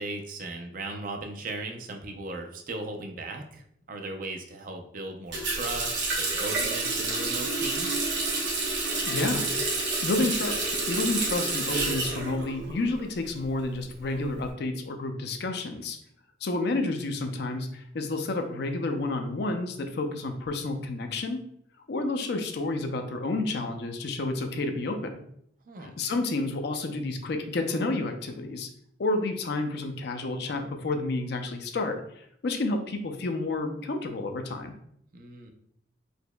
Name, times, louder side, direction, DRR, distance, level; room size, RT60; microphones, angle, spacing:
voice 1, 0.0-7.9 25.7-25.9 35.1-35.5, right 2 dB, 50° right, 4 dB, 0.5 m, -37 dB
Water tap faucet, 5.3-13.1 13.4-14.4, right 3 dB, 75° right, 1.0 m, -29 dB
voice 2, 9.1-9.5 10.0-10.6 10.9-16.0 16.4-21.4 21.9-25.2 25.8-28.7 29.0-34.7, left 2 dB, 65° left, 6 dB, 0.5 m, -30 dB
4.2 x 2.8 x 2.2 m, 0.70 s
head